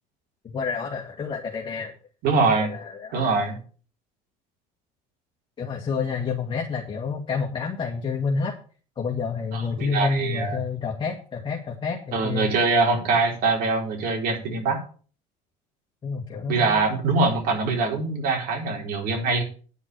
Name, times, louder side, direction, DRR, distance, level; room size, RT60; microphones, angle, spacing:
voice 1, 0.5-1.9 2.6-3.2 5.6-8.5 9.0-12.5 16.0-16.8, left 5 dB, 30° left, 0 dB, 2.0 m, -29 dB
voice 2, 2.2-2.7 3.1-3.6 9.5-10.6 12.1-14.8 16.5-19.4, right 3 dB, 65° right, 1 dB, 4.3 m, -23 dB
9.6 x 5.9 x 7.5 m, 0.41 s
cardioid pair, 120°, 16 cm